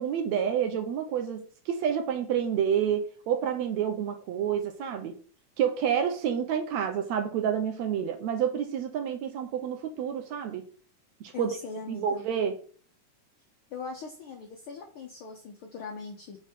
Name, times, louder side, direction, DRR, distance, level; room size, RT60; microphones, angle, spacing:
voice 1, 0.0-5.2 5.6-10.7 11.2-11.5 11.9-12.6, right 8 dB, 75° right, 1.8 m, -29 dB
voice 2, 11.3-12.3 13.7-16.4, left 4 dB, 80° left, 1.2 m, -40 dB
5.7 x 4.6 x 3.5 m
omnidirectional pair, 3.6 m